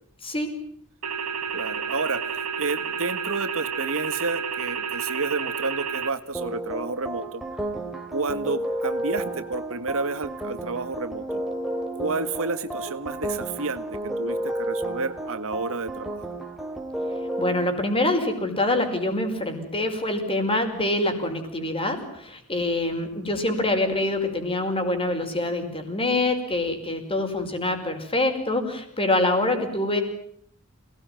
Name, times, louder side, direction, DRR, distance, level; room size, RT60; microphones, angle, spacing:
voice 1, 0.2-0.6 17.4-30.0, left 2 dB, 25° left, 6 dB, 5.4 m, -25 dB
sound 1, 1.0-6.1, right 6 dB, 80° right, 2.0 m, -30 dB
voice 2, 1.5-7.4 8.1-11.4 12.0-16.3, right 3 dB, 65° right, 10 dB, 1.7 m, -30 dB
sound 2, 6.3-17.6, right 1 dB, ahead, 3.1 m, -32 dB
28.5 x 19.5 x 9.1 m, 0.66 s
head